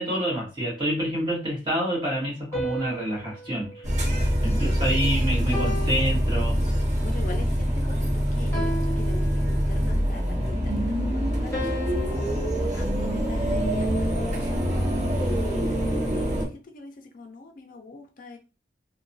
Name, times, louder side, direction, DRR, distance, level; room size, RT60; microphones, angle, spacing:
voice 1, 0.0-3.9 4.4-6.6, right 1 dB, 25° right, -3 dB, 1.3 m, -27 dB
sound 1, 2.5-4.9 5.5-7.0 8.5-10.0 11.5-13.8, equal, 15° left, 1.0 m, -36 dB
sound 2, 3.8-16.5, equal, 45° right, 0.8 m, -25 dB
voice 2, 4.5-5.3 7.0-12.2 12.6-14.6 15.1-18.4, left 3 dB, 50° left, 5 dB, 0.4 m, -42 dB
2.9 x 2.2 x 2.6 m, 0.33 s
head